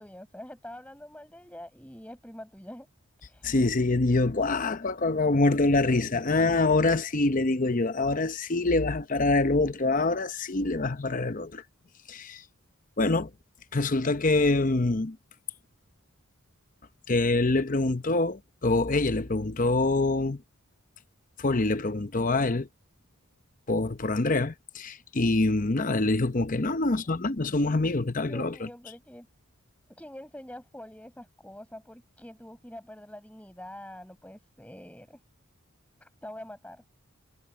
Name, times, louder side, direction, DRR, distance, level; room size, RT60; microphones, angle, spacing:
voice 1, 0.0-2.9 3.2-3.5 26.6-27.1 28.2-29.3 29.9-35.2 36.0-36.8, left 1 dB, 5° left, 5.9 m, -45 dB
voice 2, 3.4-11.6 12.1-12.4 13.0-13.3 13.7-15.2 17.1-20.4 21.4-22.7 23.7-28.7, left 2 dB, 35° left, 0.8 m, -25 dB
head